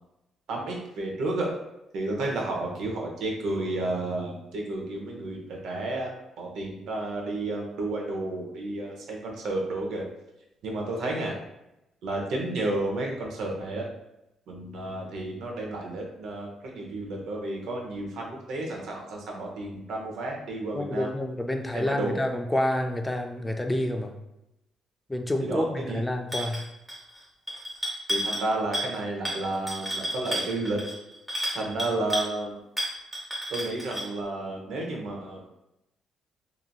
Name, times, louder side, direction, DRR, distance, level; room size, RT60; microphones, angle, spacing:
voice 1, 0.5-1.5 1.9-10.1 10.6-11.3 12.0-13.9 14.5-21.1 21.7-22.2 25.4-26.0 28.1-30.8 31.5-32.6 33.5-35.5, right 2 dB, 80° right, 0 dB, 0.7 m, -31 dB
voice 2, 20.7-24.2 25.1-26.6, left 1 dB, 10° left, 5 dB, 0.3 m, -28 dB
sound 1, 26.3-26.6 26.9-27.2 27.5-28.5 28.7-29.0 29.2-32.3 32.8-34.1, equal, 10° right, 0.9 m, -31 dB
2.9 x 2.6 x 2.3 m, 0.88 s
cardioid pair, 90°, 0 cm